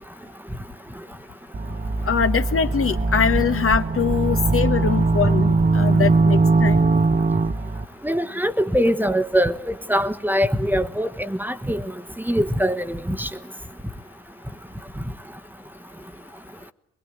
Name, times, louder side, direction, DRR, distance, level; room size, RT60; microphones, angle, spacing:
sound 1, 1.5-7.8, right 3 dB, 25° right, 1.1 m, -20 dB
voice 1, 2.1-6.8, left 7 dB, 45° left, 1.2 m, -23 dB
voice 2, 8.0-11.8 12.2-13.3, equal, 5° right, 1.4 m, -22 dB
22.0 x 21.5 x 9.3 m
supercardioid pair, 55°, 31 cm